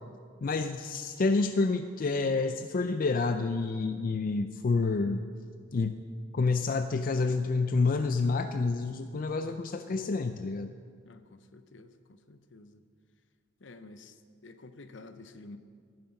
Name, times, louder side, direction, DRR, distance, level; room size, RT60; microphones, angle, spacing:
voice 1, 0.4-5.2 5.7-6.0 6.3-10.7, left 3 dB, 45° left, 9 dB, 0.4 m, -28 dB
voice 2, 11.1-11.9 12.3-12.8 13.6-14.1 14.4-15.6, left 2 dB, 70° left, 10 dB, 0.8 m, -50 dB
13.5 x 10.5 x 5.8 m, 2.1 s
head